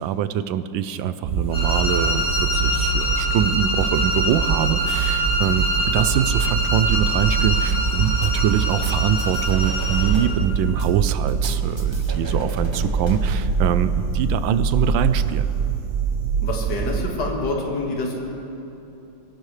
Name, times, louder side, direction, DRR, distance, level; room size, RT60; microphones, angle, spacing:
voice 1, 0.0-15.5, right 9 dB, 90° right, 12 dB, 1.4 m, -24 dB
sound 1, 1.2-17.0, right 5 dB, 65° right, 0.5 m, -24 dB
sound 2, 1.5-10.2, equal, 5° left, 4.3 m, -25 dB
sound 3, 8.2-10.3 10.8-13.3, right 2 dB, 15° right, 1.2 m, -37 dB
voice 2, 12.3-12.8 16.4-18.3, left 2 dB, 65° left, -1 dB, 2.4 m, -28 dB
21.0 x 16.5 x 3.2 m, 2.8 s
omnidirectional pair, 2.1 m